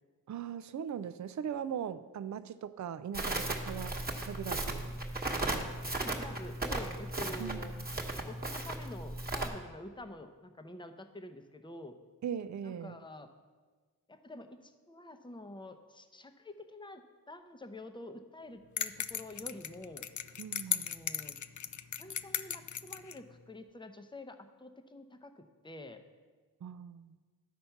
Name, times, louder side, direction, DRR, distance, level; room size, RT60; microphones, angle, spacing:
voice 1, 0.3-4.9 7.4-7.7 12.2-13.0 20.4-20.9 26.6-27.2, right 8 dB, 50° right, 13 dB, 0.4 m, -40 dB
Crackle, 3.1-9.5, right 2 dB, 25° right, 1.3 m, -36 dB
voice 2, 6.0-7.7 8.3-11.9 12.6-13.3 14.1-20.1 20.7-21.4 22.0-26.0, left 1 dB, 10° left, 7 dB, 0.7 m, -48 dB
sound 1, 18.8-23.2, left 8 dB, 50° left, 0.4 m, -37 dB
12.0 x 4.3 x 5.7 m, 1.4 s
cardioid pair, 45°, 39 cm